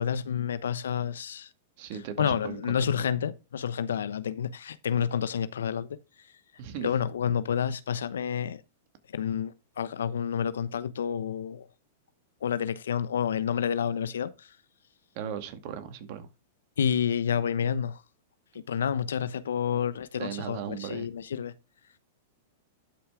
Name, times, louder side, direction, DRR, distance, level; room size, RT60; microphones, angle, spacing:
voice 1, 0.0-1.5 2.2-6.0 6.8-8.6 9.1-11.7 12.4-14.5 16.8-18.0 18.5-21.5, left 8 dB, 80° left, 0.9 m, -29 dB
voice 2, 1.8-3.1 6.6-6.9 15.1-16.3 20.2-21.1, right 8 dB, 55° right, 2.0 m, -37 dB
11.5 x 5.7 x 3.7 m
hypercardioid pair, 110°, 0 cm